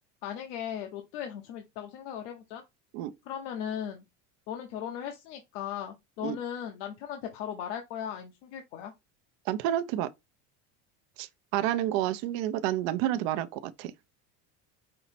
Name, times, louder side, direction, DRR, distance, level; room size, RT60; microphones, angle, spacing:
voice 1, 0.2-2.6 3.3-4.0 4.5-8.9, left 9 dB, 85° left, 0.9 m, -37 dB
voice 2, 9.5-10.1 11.2-13.9, right 12 dB, 70° right, 0.6 m, -29 dB
5.4 x 2.0 x 4.1 m
cardioid pair, 155°, 35 cm